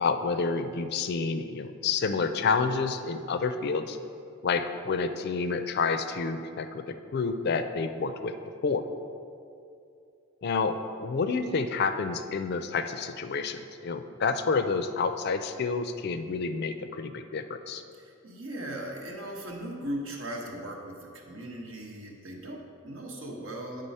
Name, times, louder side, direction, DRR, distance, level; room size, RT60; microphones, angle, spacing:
voice 1, 0.0-4.0 4.4-8.3 8.6-8.9 10.4-17.8, left 4 dB, 50° left, 9 dB, 0.4 m, -29 dB
voice 2, 18.0-23.8, right 1 dB, 75° right, 0 dB, 1.1 m, -38 dB
9.0 x 3.8 x 5.4 m, 2.5 s
head